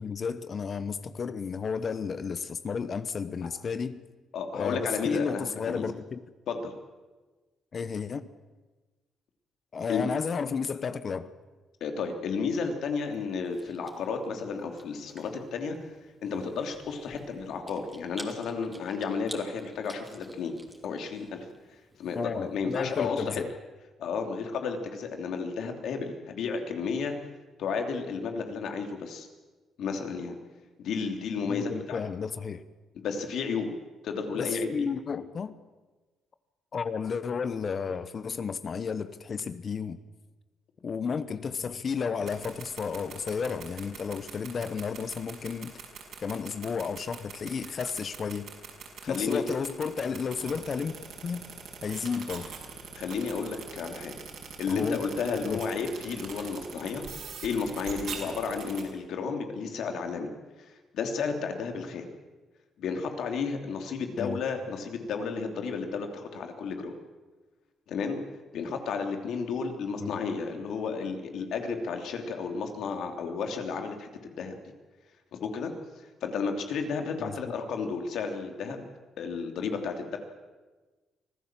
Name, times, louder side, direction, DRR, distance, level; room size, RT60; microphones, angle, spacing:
voice 1, 0.0-4.0 4.5-6.2 7.7-8.3 9.7-11.3 22.1-23.5 31.4-32.7 34.3-35.6 36.7-40.0 40.8-45.8 46.2-48.5 49.1-50.9 51.2-51.4 51.8-52.5 54.7-55.0 55.5-55.7 64.2-64.4 70.0-70.1 77.2-77.4, left 6 dB, 45° left, 1.0 m, -32 dB
voice 2, 4.3-5.8 6.5-6.7 9.9-10.0 11.8-15.8 16.2-20.5 20.8-21.4 22.0-23.4 24.0-27.1 27.6-29.3 29.8-30.3 30.8-32.0 33.0-33.7 34.0-34.9 49.0-49.4 52.9-54.1 54.6-60.3 60.9-62.1 62.8-66.9 67.9-68.2 68.5-74.5 75.3-75.7 76.2-78.9 79.2-80.2, left 5 dB, 75° left, 3.1 m, -32 dB
Chewing mastication, 12.9-23.1, right 1 dB, 10° right, 3.1 m, -51 dB
sound 1, 42.2-58.8, right 6 dB, 70° right, 5.9 m, -41 dB
25.0 x 15.5 x 7.5 m
cardioid pair, 90°, 0 cm